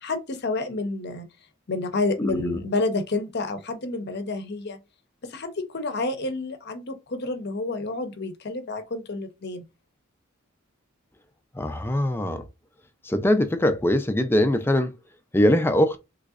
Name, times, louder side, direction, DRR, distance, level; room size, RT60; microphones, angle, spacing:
voice 1, 0.0-1.3 1.7-4.8 5.2-9.6, left 3 dB, 50° left, 0.7 m, -29 dB
voice 2, 2.2-2.6 11.5-12.4 13.0-14.9 15.3-16.0, left 1 dB, 10° left, 0.4 m, -22 dB
3.7 x 3.1 x 2.4 m
head